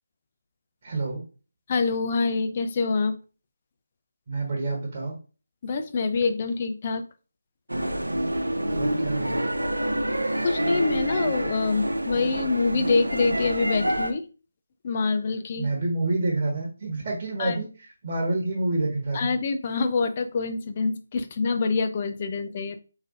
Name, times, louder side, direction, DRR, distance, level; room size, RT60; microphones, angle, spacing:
voice 1, 0.8-1.2 4.3-5.1 8.7-9.4 15.6-17.7 18.0-19.3, right 2 dB, 35° right, -1 dB, 1.4 m, -28 dB
voice 2, 1.7-3.1 5.6-7.0 10.4-14.2 14.8-15.7 17.4-17.6 19.1-22.8, left 4 dB, 30° left, 8 dB, 0.6 m, -26 dB
sound 1, 7.7-14.1, right 1 dB, 80° right, 0.8 m, -27 dB
5.3 x 4.0 x 2.5 m, 0.34 s
figure-of-eight pair, 155°, 0 cm